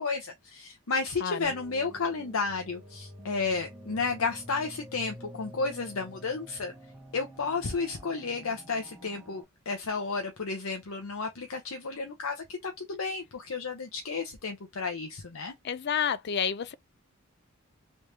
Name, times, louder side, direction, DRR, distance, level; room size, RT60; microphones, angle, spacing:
voice 1, 0.0-6.7 7.1-15.5, left 4 dB, 75° left, 0.7 m, -32 dB
voice 2, 1.2-1.5 15.6-16.7, left 7 dB, 50° left, 0.4 m, -29 dB
sound 1, 1.4-9.4, equal, 10° right, 1.1 m, -48 dB
3.3 x 3.1 x 2.7 m
head